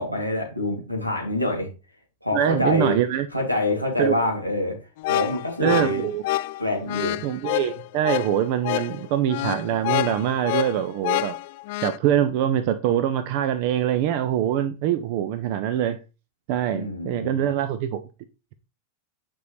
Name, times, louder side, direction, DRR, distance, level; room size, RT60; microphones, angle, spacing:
voice 1, 0.0-1.7 2.2-3.0 3.3-4.8 5.1-6.0 6.6-7.2 16.7-17.4, left 1 dB, 90° right, 2.8 m, -26 dB
voice 2, 2.3-3.3 4.0-4.1 5.6-6.2 7.2-11.3 11.8-16.0 16.5-18.0, right 10 dB, 45° right, 0.7 m, -24 dB
sound 1, 5.0-12.0, left 17 dB, 50° left, 0.3 m, -28 dB
9.5 x 5.5 x 3.3 m
figure-of-eight pair, 90°, 0 cm